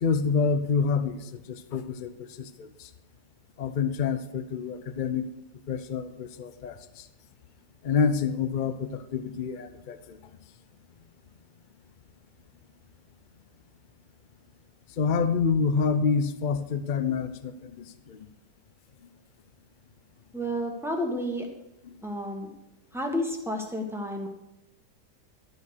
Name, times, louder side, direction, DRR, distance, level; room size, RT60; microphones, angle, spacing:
voice 1, 0.0-2.9 3.6-5.3 5.7-7.1 7.8-10.2 15.0-18.2 21.9-22.0, left 5 dB, 70° left, 11 dB, 0.4 m, -28 dB
voice 2, 20.3-21.5 22.0-22.5 22.9-24.3, equal, ahead, 1 dB, 1.4 m, -31 dB
12.5 x 6.4 x 6.5 m, 0.90 s
omnidirectional pair, 1.8 m